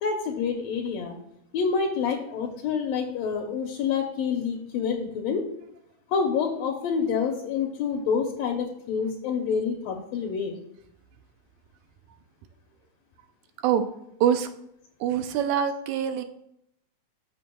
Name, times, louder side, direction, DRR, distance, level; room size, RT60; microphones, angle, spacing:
voice 1, 0.0-1.2 1.5-5.4 6.1-10.6, left 6 dB, 70° left, 3 dB, 1.9 m, -27 dB
voice 2, 15.0-16.2, right 9 dB, 80° right, 8 dB, 1.9 m, -24 dB
13.5 x 6.5 x 2.3 m, 0.76 s
omnidirectional pair, 3.6 m